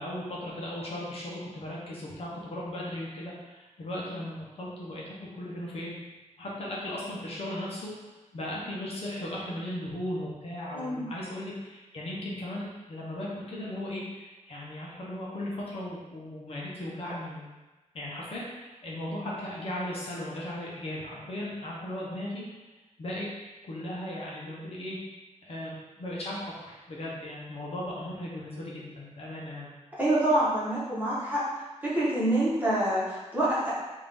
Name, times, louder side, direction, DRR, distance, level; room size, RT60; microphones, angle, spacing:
voice 1, 0.0-5.9 6.4-7.9 8.3-17.4 17.9-22.4 23.0-23.3 23.6-25.0 25.4-29.7, left 1 dB, 55° left, -5 dB, 0.8 m, -37 dB
voice 2, 10.7-11.0 30.0-31.4 31.8-33.7, right 1 dB, 15° right, -9 dB, 1.1 m, -26 dB
3.7 x 2.5 x 3.4 m, 1.2 s
wide cardioid pair, 145°, 12 cm